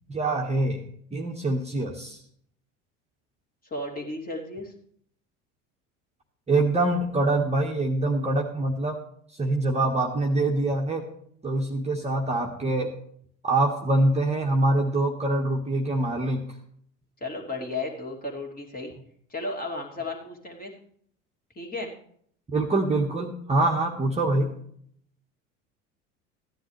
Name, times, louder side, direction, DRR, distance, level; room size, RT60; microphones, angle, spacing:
voice 1, 0.1-0.8 1.1-2.2 6.5-9.0 9.4-11.0 11.4-12.9 13.4-16.4 22.5-24.5, right 2 dB, 15° right, 0 dB, 1.4 m, -24 dB
voice 2, 3.7-4.7 17.2-18.9 19.3-20.7 21.5-21.9, left 2 dB, 20° left, 0 dB, 2.6 m, -34 dB
15.0 x 10.0 x 3.3 m, 0.64 s
hypercardioid pair, 75°, 39 cm